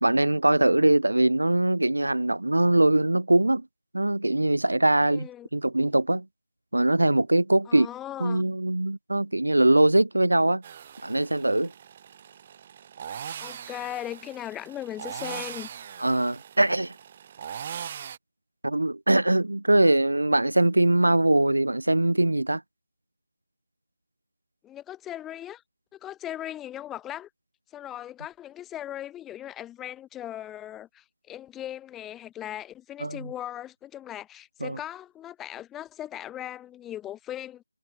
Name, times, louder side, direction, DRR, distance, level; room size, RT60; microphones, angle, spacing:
voice 1, 0.0-3.7 3.9-6.3 6.7-7.9 8.2-10.6 11.0-11.7 16.0-16.9 18.6-22.6 33.0-33.3 34.6-34.8, right 1 dB, 85° right, 0.7 m, -22 dB
voice 2, 5.0-5.5 7.7-8.4 13.4-15.7 24.6-25.6 25.9-27.3 27.7-37.6, left 12 dB, 10° left, 1.4 m, -38 dB
sound 1, 10.6-18.2, right 8 dB, 30° right, 1.0 m, -40 dB
figure-of-eight pair, 160°, 0 cm